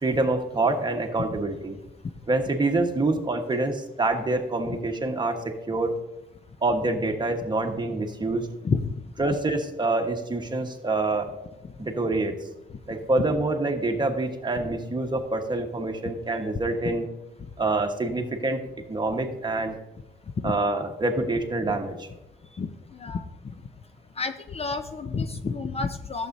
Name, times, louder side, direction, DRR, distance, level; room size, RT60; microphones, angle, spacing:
voice 1, 0.0-1.7 2.3-6.0 6.6-8.5 9.2-11.3 11.8-12.3 12.9-17.0 17.6-18.6 18.9-19.8 20.4-22.1, right 2 dB, 20° right, 4 dB, 1.3 m, -26 dB
voice 2, 22.5-23.5 24.2-26.3, left 4 dB, 30° left, 8 dB, 0.5 m, -30 dB
12.0 x 7.6 x 2.7 m, 0.97 s
cardioid pair, 90°, 20 cm